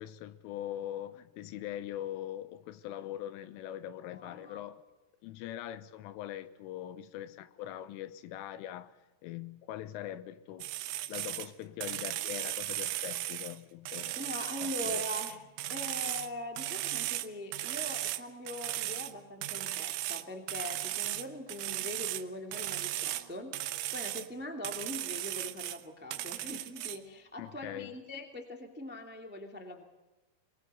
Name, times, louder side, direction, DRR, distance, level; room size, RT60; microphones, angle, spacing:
voice 1, 0.0-4.8 5.2-9.0 9.2-10.7 11.1-14.3 14.6-15.0 27.4-27.9, left 12 dB, 90° left, 3.6 m, -42 dB
voice 2, 4.0-4.6 14.1-15.4 15.7-29.8, left 1 dB, 10° right, 0.5 m, -42 dB
sound 1, 10.6-11.5 11.8-13.6 13.9-16.3 16.6-18.2 18.5-19.1 19.4-22.2 22.5-23.3 23.5-24.3 24.6-25.8 26.1-27.0, right 15 dB, 80° right, 3.3 m, -36 dB
23.5 x 21.0 x 6.8 m
omnidirectional pair, 5.6 m